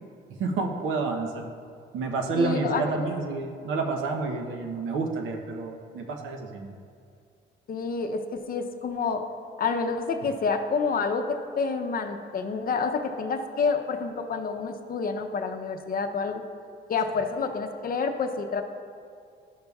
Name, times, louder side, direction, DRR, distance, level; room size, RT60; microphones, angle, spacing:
voice 1, 0.4-1.5 1.9-6.8, right 3 dB, 85° right, 3 dB, 0.8 m, -29 dB
voice 2, 2.4-2.8 7.7-9.2 9.6-16.4 16.9-18.6, left 5 dB, 45° left, 6 dB, 0.6 m, -28 dB
11.0 x 6.7 x 2.3 m, 2.3 s
cardioid pair, 90°, 20 cm